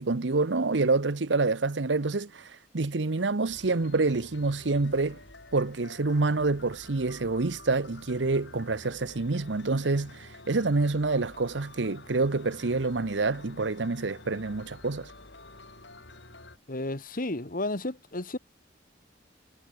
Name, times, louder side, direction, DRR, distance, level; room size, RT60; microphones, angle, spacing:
voice 1, 0.0-5.2 5.5-15.1, right 3 dB, 75° right, 0.9 m, -27 dB
sound 1, 3.5-16.6, left 2 dB, 70° left, 7.2 m, -49 dB
voice 2, 16.7-18.4, left 2 dB, 50° left, 2.0 m, -32 dB
head